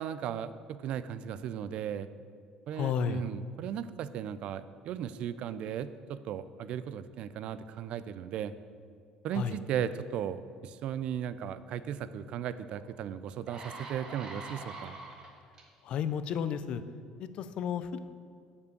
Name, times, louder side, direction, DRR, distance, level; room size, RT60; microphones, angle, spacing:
voice 1, 0.0-2.1 2.7-8.5 9.2-15.0, right 9 dB, 60° right, 14 dB, 0.4 m, -36 dB
voice 2, 2.7-3.2 9.3-9.6 15.8-16.8 17.2-18.0, left 8 dB, 55° left, 12 dB, 0.5 m, -32 dB
sound 1, 12.7-12.8 13.3-15.6 16.3-16.5, right 3 dB, 40° right, 1.4 m, -44 dB
6.9 x 5.4 x 6.5 m, 2.2 s
supercardioid pair, 105°, 2 cm